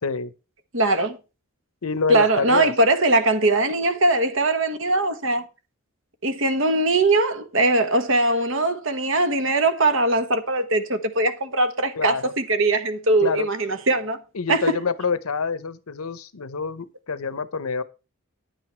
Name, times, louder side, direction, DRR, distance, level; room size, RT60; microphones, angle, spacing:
voice 1, 0.0-0.3 1.8-2.7 11.9-12.3 13.2-13.5 14.3-17.8, left 5 dB, 90° left, 0.8 m, -27 dB
voice 2, 0.7-1.2 2.1-5.4 6.2-14.2 14.5-14.8, right 2 dB, 65° right, 1.3 m, -21 dB
10.0 x 8.0 x 4.4 m
head